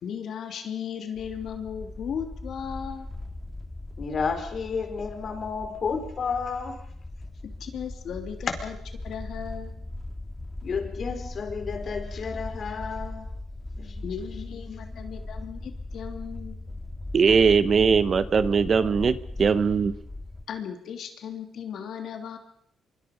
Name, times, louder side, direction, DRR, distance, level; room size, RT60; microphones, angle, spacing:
voice 1, 0.0-3.1 7.6-8.8 9.0-9.7 14.0-16.6 20.5-22.4, left 8 dB, 65° left, 5 dB, 3.0 m, -36 dB
sound 1, 1.2-20.4, left 2 dB, 15° left, 2.0 m, -39 dB
voice 2, 4.0-6.8 10.6-13.3 13.7-14.1 14.5-15.1 16.7-16.8, left 5 dB, 50° left, 6 dB, 4.6 m, -32 dB
voice 3, 17.1-19.9, right 5 dB, 45° right, 14 dB, 1.1 m, -20 dB
25.0 x 24.0 x 5.3 m, 0.67 s
cardioid pair, 90°, 0 cm